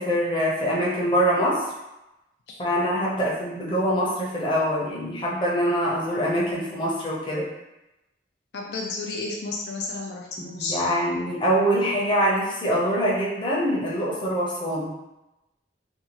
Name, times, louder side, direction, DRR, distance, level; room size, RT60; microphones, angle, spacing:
voice 1, 0.0-1.6 2.6-7.5 10.4-14.9, equal, 25° left, -5 dB, 0.6 m, -24 dB
voice 2, 8.5-10.8, left 3 dB, 70° left, -1 dB, 0.3 m, -32 dB
2.7 x 2.3 x 2.9 m, 0.97 s
head